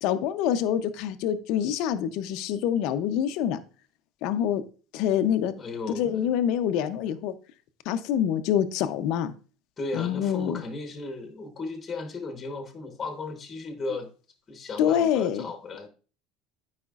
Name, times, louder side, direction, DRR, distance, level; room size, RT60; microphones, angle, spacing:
voice 1, 0.0-3.6 4.2-4.6 4.9-5.5 6.0-7.3 7.9-9.3 9.9-10.6 14.8-15.4, left 9 dB, 60° left, 10 dB, 0.5 m, -26 dB
voice 2, 5.6-6.3 9.8-14.1 14.5-15.9, left 3 dB, 15° left, 6 dB, 1.0 m, -35 dB
12.5 x 4.9 x 2.4 m, 0.37 s
cardioid pair, 170°, 0 cm